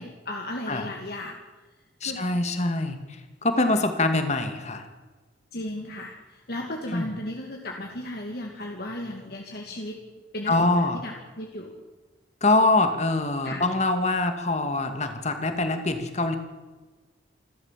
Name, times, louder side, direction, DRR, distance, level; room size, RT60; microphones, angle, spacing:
voice 1, 0.0-1.4 2.0-2.2 3.6-3.8 5.5-10.0 10.3-11.8 13.4-13.6, left 1 dB, 55° left, 1 dB, 2.2 m, -35 dB
voice 2, 2.0-4.9 6.9-7.1 10.5-11.0 12.4-16.4, left 2 dB, 35° left, 7 dB, 2.2 m, -24 dB
27.5 x 12.5 x 7.5 m, 1.3 s
head